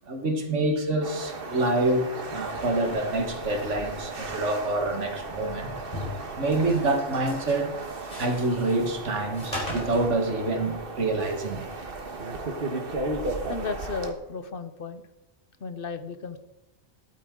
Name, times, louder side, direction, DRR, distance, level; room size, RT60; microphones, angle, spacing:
voice 1, 0.1-5.7 6.4-7.7 8.2-11.7, right 2 dB, 85° right, 1.9 m, -27 dB
sound 1, 1.0-14.1, right 3 dB, 55° right, 1.5 m, -35 dB
sound 2, 2.5-10.1, left 1 dB, 35° left, 4.5 m, -41 dB
voice 2, 13.5-15.1 15.6-16.4, left 4 dB, 55° left, 0.9 m, -34 dB
13.5 x 12.0 x 3.7 m
omnidirectional pair, 1.2 m